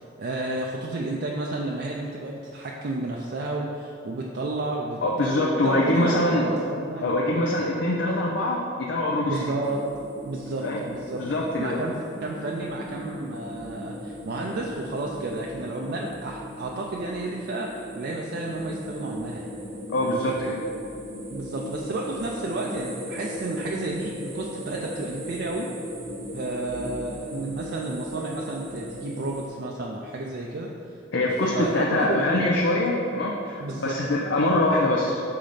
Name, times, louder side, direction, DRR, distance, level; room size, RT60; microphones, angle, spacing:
voice 1, 0.2-7.2 9.3-9.8 10.2-11.2 11.6-17.7 18.0-19.5 21.3-25.7 26.3-30.7 31.5-32.2 33.6-33.9, right 2 dB, 60° right, -1 dB, 0.4 m, -31 dB
voice 2, 5.0-6.5 7.0-9.5 10.6-10.8 11.2-11.8 19.9-20.6 31.1-35.2, left 1 dB, 70° left, -2 dB, 0.5 m, -24 dB
sound 1, 9.6-29.5, equal, 30° right, 0.8 m, -37 dB
5.7 x 3.9 x 5.0 m, 2.6 s
head